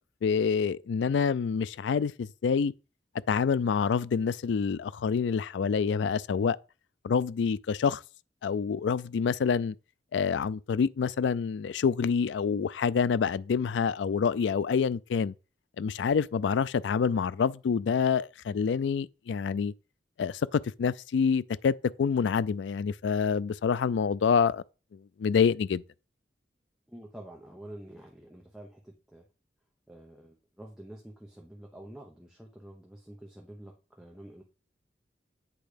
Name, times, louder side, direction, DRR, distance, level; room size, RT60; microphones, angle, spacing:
voice 1, 0.2-2.7 3.3-6.6 7.0-8.0 8.4-9.7 10.1-15.3 15.8-19.7 20.2-24.6 25.2-25.8, left 6 dB, 80° left, 0.3 m, -27 dB
voice 2, 26.9-29.2 29.9-34.4, right 1 dB, 5° right, 0.9 m, -48 dB
8.4 x 3.3 x 5.0 m
head